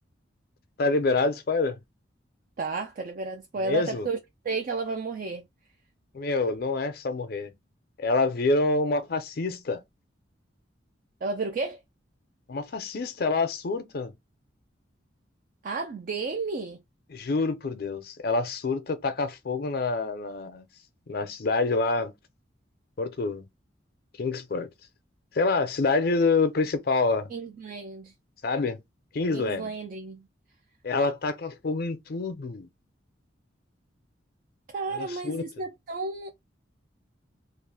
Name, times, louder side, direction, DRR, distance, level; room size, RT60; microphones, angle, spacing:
voice 1, 0.8-1.8 3.6-4.1 6.1-7.5 8.0-9.8 12.5-14.1 17.1-20.6 21.1-22.1 23.0-23.4 24.2-24.7 25.3-27.3 28.4-28.8 29.1-29.7 30.8-32.7 35.0-35.4, left 3 dB, 55° left, 0.5 m, -27 dB
voice 2, 2.6-4.2 4.4-5.4 11.2-11.8 15.6-16.8 27.3-28.1 29.3-30.3 34.7-36.3, right 4 dB, 45° right, 0.3 m, -32 dB
2.4 x 2.1 x 3.2 m
head